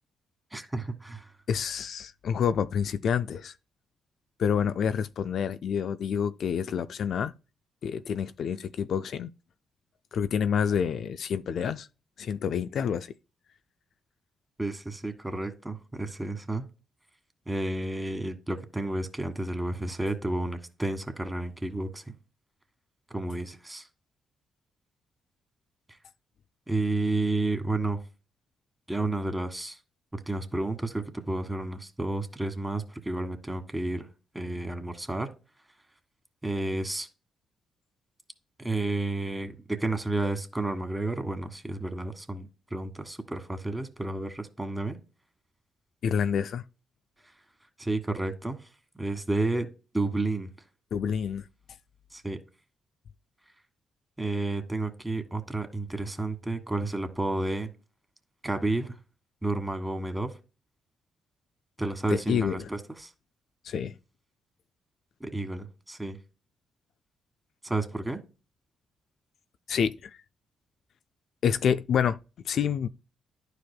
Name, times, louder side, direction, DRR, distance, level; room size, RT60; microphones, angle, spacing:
voice 1, 0.5-1.3 14.6-16.6 17.5-22.1 23.1-23.9 26.7-28.0 28.9-29.8 30.1-34.1 34.3-35.3 36.4-37.1 38.6-45.0 47.8-48.6 49.0-49.7 49.9-50.5 52.1-52.4 54.2-57.7 58.4-59.0 59.4-60.3 61.8-63.1 65.2-66.2 67.6-68.2, right 2 dB, 15° right, 1.6 m, -31 dB
voice 2, 1.5-3.5 4.4-7.3 7.8-9.3 10.1-11.9 12.2-13.1 46.0-46.6 50.9-51.4 62.1-62.7 63.6-63.9 69.7-70.2 71.4-72.2 72.5-72.9, left 7 dB, 65° left, 0.3 m, -28 dB
11.5 x 4.8 x 2.2 m
hypercardioid pair, 45°, 0 cm